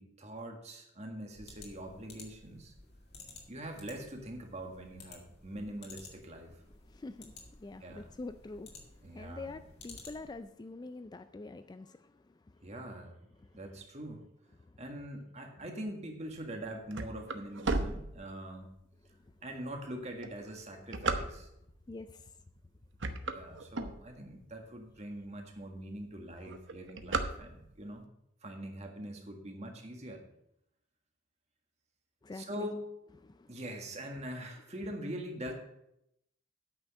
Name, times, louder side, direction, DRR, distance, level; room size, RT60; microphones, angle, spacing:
voice 1, 0.0-2.7 3.5-6.6 7.8-8.1 9.0-9.6 12.6-13.2 13.5-14.3 14.8-18.7 19.4-21.5 23.2-28.1 28.4-30.2 32.3-32.9 33.5-35.5, right 1 dB, 35° right, 3 dB, 1.7 m, -43 dB
sound 1, 1.3-10.5, left 3 dB, 55° left, 2.3 m, -54 dB
voice 2, 6.8-12.7 13.4-13.6 14.6-14.8 19.1-19.3 21.9-22.4 32.2-32.7 33.2-33.6, left 3 dB, 20° left, 11 dB, 0.3 m, -46 dB
sound 2, 16.5-18.7 19.3-19.4 20.1-21.8 22.4-22.6 22.9-24.5 25.0-25.1 25.3-25.4 25.7-26.0 26.3-27.9, right 3 dB, 65° right, 0.9 m, -35 dB
8.8 x 6.2 x 7.5 m, 0.80 s
head